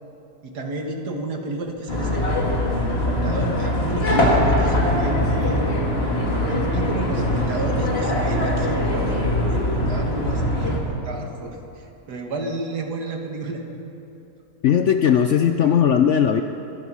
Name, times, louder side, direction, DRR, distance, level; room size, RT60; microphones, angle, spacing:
voice 1, 0.4-2.6 2.9-5.7 6.5-13.6 15.6-15.8, right 2 dB, 75° right, 3 dB, 2.0 m, -31 dB
sound 1, 1.9-10.8, left 1 dB, 35° left, 2.3 m, -22 dB
sound 2, 4.1-9.1, equal, 5° left, 2.2 m, -36 dB
voice 2, 14.6-16.4, left 8 dB, 65° left, 7 dB, 0.7 m, -18 dB
24.0 x 11.0 x 5.5 m, 2.9 s
omnidirectional pair, 1.7 m